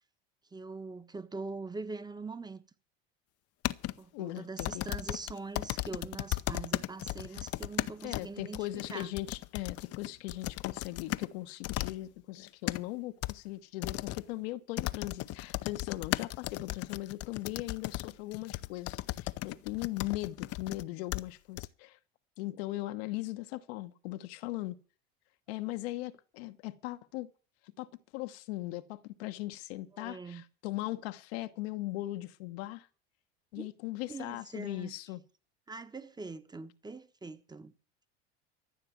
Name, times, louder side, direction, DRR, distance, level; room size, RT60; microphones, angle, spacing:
voice 1, 0.5-2.6 4.0-9.1 25.6-25.7 29.9-30.4 33.5-33.7 34.1-34.9 35.7-37.7, right 3 dB, 10° right, 1.2 m, -43 dB
sound 1, 3.6-3.9 4.6-11.3 11.6-11.9 12.4-12.8 13.2-13.3 13.8-14.2 14.8-20.8 21.1-21.2 21.6-21.7, left 17 dB, 50° left, 0.7 m, -36 dB
voice 2, 4.1-4.8 8.0-22.0 22.4-24.8 25.5-27.3 27.6-27.9 28.1-32.9 33.5-35.2, left 17 dB, 70° left, 1.1 m, -39 dB
14.5 x 6.7 x 9.2 m
hypercardioid pair, 85°, 32 cm